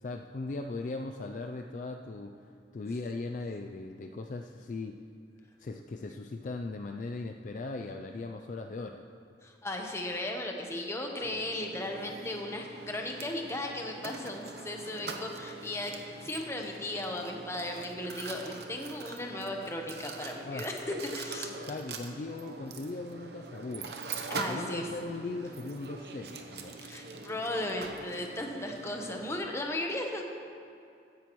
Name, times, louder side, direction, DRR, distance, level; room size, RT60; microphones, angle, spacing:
voice 1, 0.0-5.0 5.6-9.0 20.5-20.7 21.7-23.9 24.3-26.8, left 3 dB, 45° left, 4 dB, 0.4 m, -38 dB
voice 2, 9.4-15.9 16.2-20.8 21.1-21.5 24.3-24.9 26.8-30.2, left 1 dB, 15° left, 2 dB, 1.0 m, -36 dB
Mechanisms, 11.2-29.4, right 3 dB, 65° right, 0.8 m, -43 dB
15.5 x 10.5 x 3.1 m, 2.5 s
head